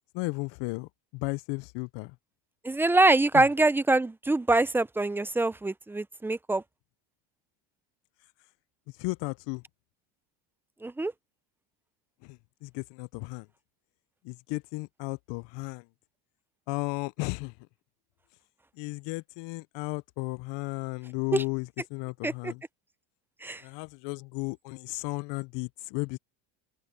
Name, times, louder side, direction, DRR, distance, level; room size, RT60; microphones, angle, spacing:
voice 1, 0.1-2.1 3.3-3.4 9.0-9.6 12.2-13.5 14.2-15.8 16.7-17.5 18.8-22.6 23.6-26.2, left 26 dB, 60° left, 0.6 m, -34 dB
voice 2, 2.6-6.6 10.8-11.1 21.3-21.4 22.2-22.5 23.4-23.6, right 2 dB, 5° right, 0.4 m, -24 dB
supercardioid pair, 115°, 50 cm